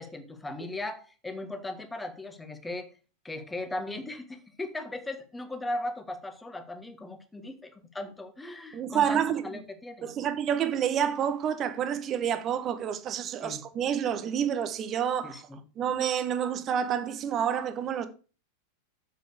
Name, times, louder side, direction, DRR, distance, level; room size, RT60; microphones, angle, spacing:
voice 1, 0.0-2.9 3.2-10.1 13.4-13.6 15.2-15.6, left 2 dB, 10° left, 1.7 m, -38 dB
voice 2, 8.7-9.4 10.0-15.5 15.8-18.1, right 8 dB, 30° right, 1.3 m, -28 dB
7.7 x 6.8 x 6.6 m
figure-of-eight pair, 90°, 0 cm